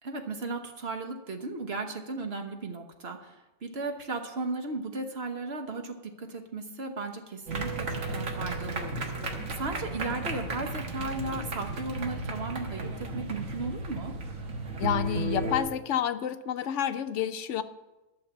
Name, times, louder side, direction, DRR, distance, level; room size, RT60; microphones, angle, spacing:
voice 1, 0.0-14.1, right 3 dB, 55° right, 5 dB, 1.4 m, -36 dB
sound 1, 7.5-15.6, right 2 dB, 85° right, 1.8 m, -34 dB
voice 2, 14.8-17.6, left 9 dB, 75° left, 11 dB, 0.9 m, -29 dB
12.0 x 6.5 x 7.1 m, 1.0 s
omnidirectional pair, 1.3 m